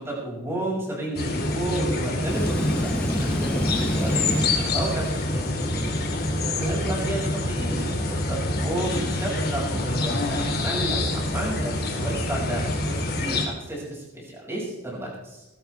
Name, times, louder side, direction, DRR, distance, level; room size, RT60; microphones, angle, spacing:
voice 1, 0.0-6.0 6.6-15.5, right 1 dB, 10° right, -4 dB, 6.1 m, -32 dB
sound 1, 1.1-13.4, left 2 dB, 45° left, 2.6 m, -26 dB
sound 2, 2.2-5.4, equal, 5° left, 0.5 m, -28 dB
20.5 x 12.5 x 3.5 m, 1.0 s
head